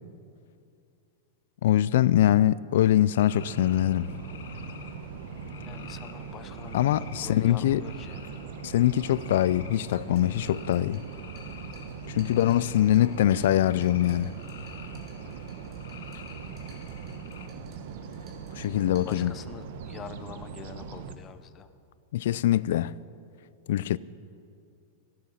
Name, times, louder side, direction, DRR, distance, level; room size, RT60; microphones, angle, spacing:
voice 1, 1.6-4.1 6.7-7.8 8.6-11.0 12.1-14.3 18.6-19.3 22.1-23.0 23.7-24.0, left 12 dB, 65° left, 0.3 m, -23 dB
sound 1, 3.1-17.5, left 8 dB, 90° left, 1.1 m, -50 dB
sound 2, 3.3-21.2, right 5 dB, 55° right, 0.9 m, -40 dB
voice 2, 5.6-8.2 12.6-13.2 19.0-21.7, left 8 dB, 20° left, 0.6 m, -45 dB
sound 3, 9.9-19.8, right 4 dB, 25° right, 2.1 m, -60 dB
16.0 x 11.5 x 5.6 m
supercardioid pair, 170°, 0 cm